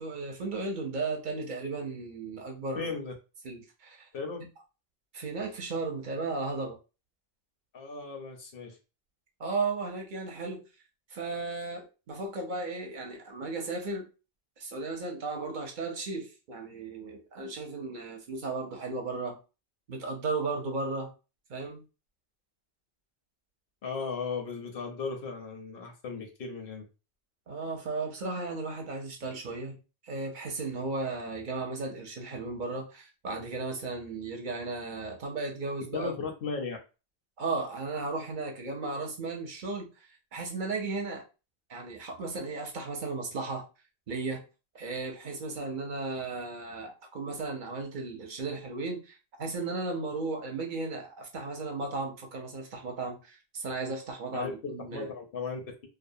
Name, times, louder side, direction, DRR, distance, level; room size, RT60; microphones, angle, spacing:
voice 1, 0.0-2.9 3.4-4.1 5.1-6.8 9.4-10.6 11.1-14.1 14.6-19.4 19.9-21.1 21.5-21.8 27.5-29.8 30.0-36.1 37.4-41.2 41.7-43.6 44.1-44.4 44.7-55.1, right 3 dB, 55° right, 0.7 m, -35 dB
voice 2, 2.8-3.1 4.1-4.4 7.7-8.8 23.8-26.9 35.9-36.8 54.3-54.5 54.9-55.6, left 4 dB, 70° left, 0.8 m, -36 dB
2.4 x 2.0 x 2.6 m
omnidirectional pair, 1.0 m